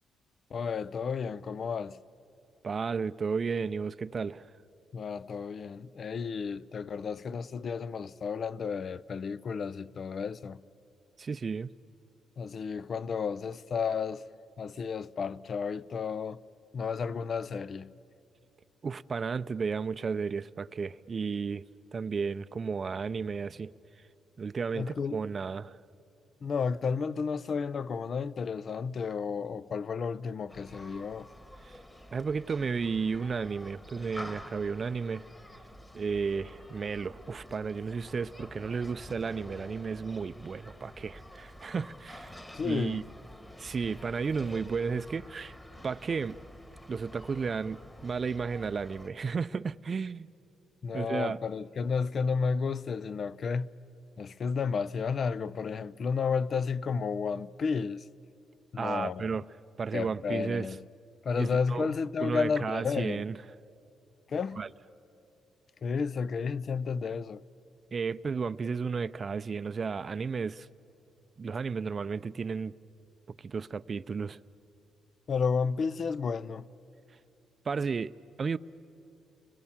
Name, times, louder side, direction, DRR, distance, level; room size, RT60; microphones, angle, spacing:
voice 1, 0.5-2.0 4.9-10.6 12.4-14.2 14.6-16.4 16.7-17.9 24.7-25.2 26.4-31.3 42.5-43.0 50.8-53.7 54.2-58.0 58.7-59.4 59.9-60.8 61.2-63.3 64.3-64.6 65.8-67.4 75.3-76.7, left 5 dB, 50° left, 0.5 m, -32 dB
voice 2, 2.6-4.4 11.2-11.7 18.8-21.6 21.9-23.7 24.4-25.8 31.6-31.8 32.1-35.3 35.9-42.3 42.6-43.0 43.6-45.5 45.8-46.4 46.9-50.3 50.9-51.4 58.8-59.4 59.8-60.7 61.4-61.9 62.2-63.3 64.6-64.7 67.9-70.7 71.4-72.7 73.4-74.4 77.7-78.1 78.4-78.6, right 5 dB, 40° right, 0.5 m, -33 dB
Human group actions, 30.5-49.1, left 1 dB, 15° left, 1.7 m, -49 dB
30.0 x 21.5 x 7.3 m
cardioid pair, 90°, 0 cm